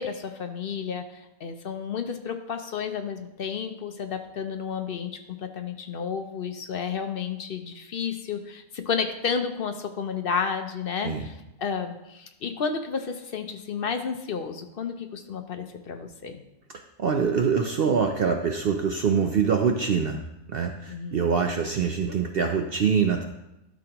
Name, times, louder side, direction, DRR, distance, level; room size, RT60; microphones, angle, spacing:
voice 1, 0.0-16.4 20.9-21.2, left 6 dB, 55° left, 7 dB, 0.7 m, -31 dB
voice 2, 17.0-20.2 20.5-23.2, right 6 dB, 55° right, 4 dB, 0.7 m, -24 dB
12.0 x 6.2 x 3.0 m, 0.90 s
omnidirectional pair, 1.4 m